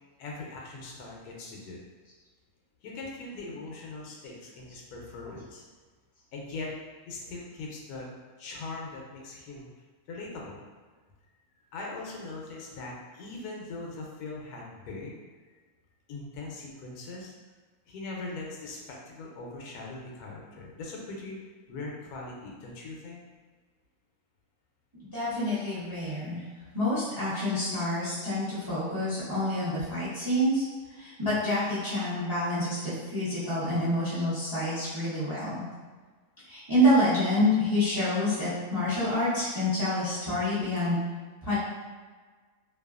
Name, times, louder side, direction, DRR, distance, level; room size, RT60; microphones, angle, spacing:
voice 1, 0.2-1.9 2.8-5.6 6.3-6.7 7.1-8.1 8.4-9.7 10.1-10.6 11.7-15.1 15.5-15.6 16.1-17.3 17.9-21.4 21.7-23.2, left 3 dB, 90° left, -2 dB, 1.1 m, -40 dB
voice 2, 25.1-26.4 26.7-30.6 31.0-35.5 36.4-41.0 41.4-41.6, left 1 dB, 30° right, -11 dB, 0.3 m, -27 dB
2.7 x 2.3 x 2.3 m, 1.4 s
omnidirectional pair, 1.6 m